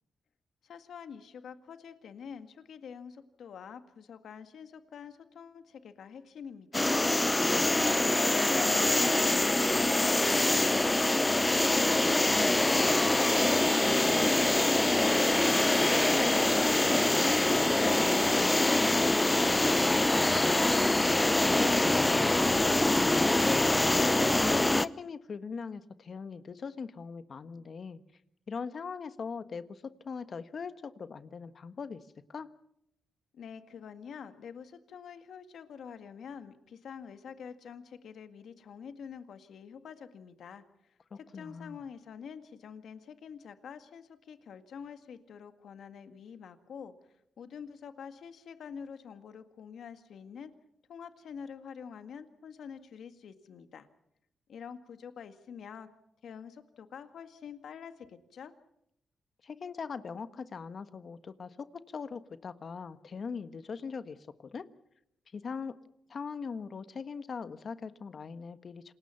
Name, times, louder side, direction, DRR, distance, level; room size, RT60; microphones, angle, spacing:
voice 1, 0.6-11.1 11.4-13.3 13.6-15.2 15.7-20.6 33.3-40.6 41.1-50.5 50.9-53.9 54.5-55.9 56.2-58.5, left 7 dB, 75° left, 9 dB, 1.9 m, -46 dB
sound 1, 6.7-24.9, left 2 dB, 15° left, 0.8 m, -25 dB
voice 2, 7.4-7.8 21.4-28.0 28.5-32.0 32.3-32.5 41.1-41.8 59.4-64.7 65.3-65.7 66.1-68.9, left 5 dB, 55° left, 11 dB, 1.5 m, -41 dB
27.5 x 20.5 x 5.8 m, 0.76 s
cardioid pair, 65°, 0 cm